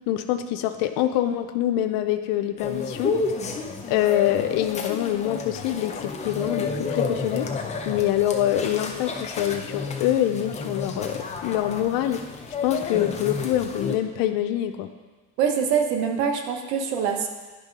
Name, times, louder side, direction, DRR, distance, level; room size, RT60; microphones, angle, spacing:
voice 1, 0.1-3.2 3.9-7.5 7.9-12.2 12.6-14.9, left 12 dB, 75° left, 8 dB, 0.6 m, -25 dB
sound 1, 2.6-14.0, left 4 dB, 20° left, 0.6 m, -31 dB
voice 2, 15.4-17.3, right 7 dB, 80° right, 4 dB, 1.0 m, -24 dB
9.9 x 3.6 x 5.2 m, 1.3 s
cardioid pair, 125°, 34 cm